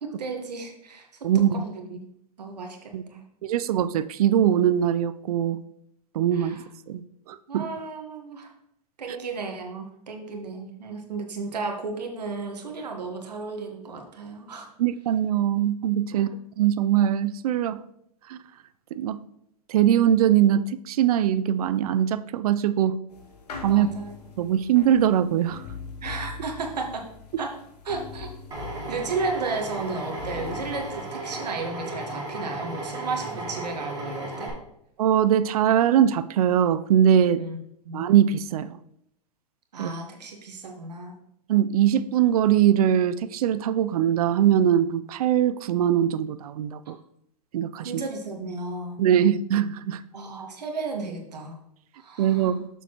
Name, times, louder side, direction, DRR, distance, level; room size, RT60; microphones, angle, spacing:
voice 1, 0.0-1.1 1.3-2.0 2.4-3.2 6.3-6.6 7.5-8.5 9.0-14.7 16.1-16.4 23.7-24.1 26.0-27.1 27.4-27.6 27.8-28.3 28.9-34.5 37.4-37.6 37.8-38.1 39.7-41.2 47.8-49.0 50.1-51.6 51.9-52.5, right 3 dB, 85° right, 3 dB, 1.4 m, -34 dB
voice 2, 1.2-1.6 2.9-3.0 3.4-5.6 6.1-6.6 6.9-7.0 7.3-7.6 14.8-16.3 16.6-17.8 18.3-18.4 19.0-19.2 19.7-23.0 23.6-23.9 24.4-25.6 35.0-37.4 37.9-38.7 39.8-39.9 41.5-47.0 47.5-48.0 49.0-50.0 52.2-52.6, right 10 dB, 65° right, 15 dB, 0.5 m, -21 dB
sound 1, 23.1-31.0, left 5 dB, 80° left, 1.5 m, -42 dB
Drill, 28.5-34.5, right 2 dB, 20° right, 2.7 m, -35 dB
6.8 x 6.5 x 3.0 m, 0.75 s
hypercardioid pair, 120°, 20 cm